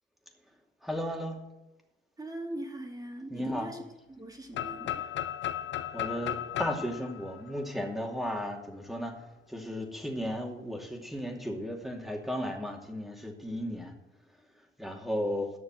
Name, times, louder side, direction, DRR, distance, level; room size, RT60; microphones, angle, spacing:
voice 1, 0.8-1.4 3.3-3.7 5.9-13.9 14.8-15.5, equal, ahead, 1 dB, 2.5 m, -35 dB
voice 2, 2.2-3.8 4.2-5.1, right 1 dB, 20° right, 1 dB, 2.6 m, -41 dB
sound 1, 4.5-8.4, left 11 dB, 70° left, 0.7 m, -36 dB
11.0 x 6.5 x 7.5 m, 0.93 s
cardioid pair, 90°, 20 cm